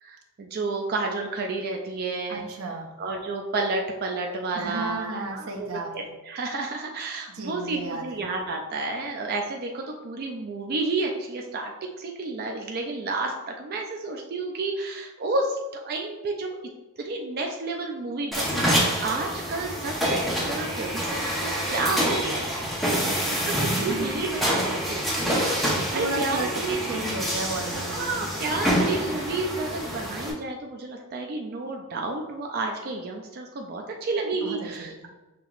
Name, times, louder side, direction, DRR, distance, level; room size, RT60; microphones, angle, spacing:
voice 1, 0.0-2.5 3.0-16.6 17.0-22.5 23.3-26.8 27.9-34.9, right 3 dB, 45° right, 2 dB, 0.4 m, -31 dB
voice 2, 2.3-2.9 4.5-6.1 7.3-8.0 22.8-24.1 25.9-26.5 26.8-28.3 34.4-35.1, right 2 dB, 80° right, 2 dB, 0.7 m, -34 dB
sound 1, 18.3-30.3, equal, ahead, 0.8 m, -27 dB
6.0 x 2.9 x 2.4 m, 1.1 s
head